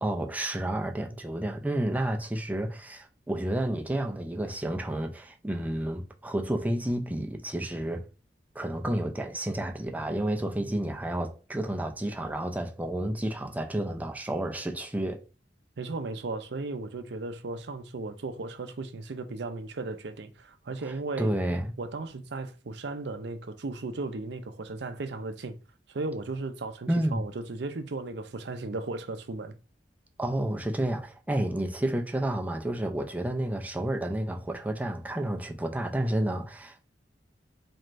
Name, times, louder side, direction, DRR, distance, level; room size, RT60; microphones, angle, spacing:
voice 1, 0.0-8.0 8.6-15.2 20.8-21.7 26.9-27.2 30.2-36.8, right 1 dB, 10° right, 0.5 m, -30 dB
voice 2, 15.8-21.3 21.8-25.5 25.9-29.5, right 3 dB, 65° right, 0.5 m, -36 dB
4.3 x 3.2 x 2.5 m
head